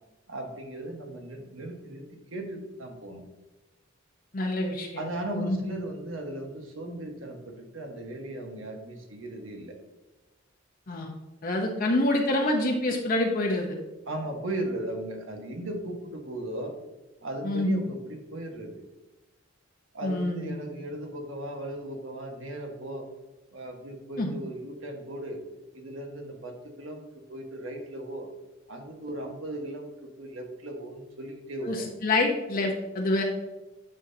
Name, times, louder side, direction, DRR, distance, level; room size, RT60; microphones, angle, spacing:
voice 1, 0.3-3.2 5.0-9.7 14.1-16.8 17.2-18.8 19.9-23.1 23.5-25.4 25.7-28.3 28.7-31.9, right 1 dB, 70° right, 2 dB, 1.4 m, -37 dB
voice 2, 4.3-4.9 5.3-5.6 10.9-11.1 11.4-13.8 17.4-17.8 20.0-20.5 24.2-24.3 31.6-31.8 32.0-33.2, left 2 dB, 45° left, 1 dB, 0.9 m, -26 dB
9.2 x 5.7 x 2.8 m, 1.1 s
head